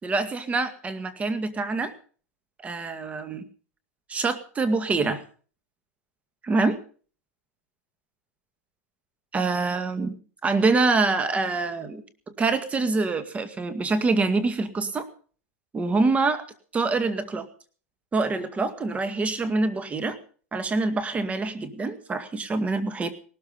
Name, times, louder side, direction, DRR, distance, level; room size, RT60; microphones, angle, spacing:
voice 1, 0.0-1.9 2.6-3.4 4.1-5.2 6.4-6.8 9.3-10.2 10.4-15.1 15.7-16.4 16.7-17.5 18.1-20.2 20.5-23.1, right 3 dB, 15° right, 10 dB, 2.0 m, -25 dB
18.5 x 13.0 x 5.4 m, 0.43 s
supercardioid pair, 130°, 8 cm